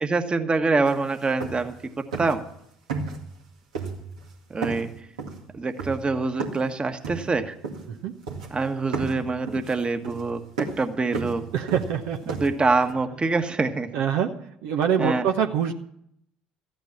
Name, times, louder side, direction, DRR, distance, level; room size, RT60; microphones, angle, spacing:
voice 1, 0.0-2.4 4.5-4.9 5.5-7.5 8.5-10.4 10.8-11.4 12.4-13.9 15.0-15.2, right 3 dB, 25° right, 7 dB, 1.5 m, -25 dB
sound 1, 0.8-1.0 1.2-1.8 2.1-2.5 2.9-3.4 3.7-4.3 4.6-6.7 7.0-8.0 8.3-8.6 8.9-12.9, right 4 dB, 85° right, 2.1 m, -34 dB
voice 2, 11.5-12.4 13.9-14.3 14.6-15.7, right 8 dB, 65° right, 4 dB, 0.9 m, -24 dB
14.0 x 9.3 x 7.4 m, 0.72 s
hypercardioid pair, 60°, 4 cm